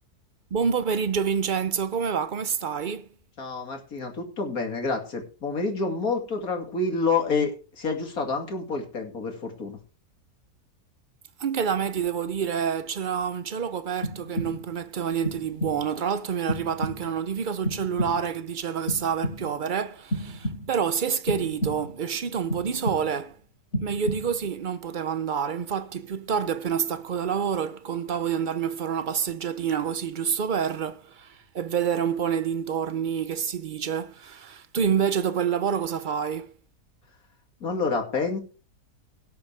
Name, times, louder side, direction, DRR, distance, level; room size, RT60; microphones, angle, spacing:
voice 1, 0.5-3.1 11.4-23.4 23.8-36.5, right 7 dB, 70° right, 0.4 m, -28 dB
voice 2, 3.4-7.5 7.8-9.8 37.6-38.4, left 4 dB, 60° left, 2.8 m, -28 dB
sound 1, 14.0-14.8 15.2-16.0 16.5-17.3 17.6-18.4 18.9-19.7 20.1-20.9 21.3-22.1 22.5-23.3 23.7-24.5, equal, 40° left, 3.9 m, -32 dB
17.5 x 7.9 x 3.4 m
omnidirectional pair, 1.7 m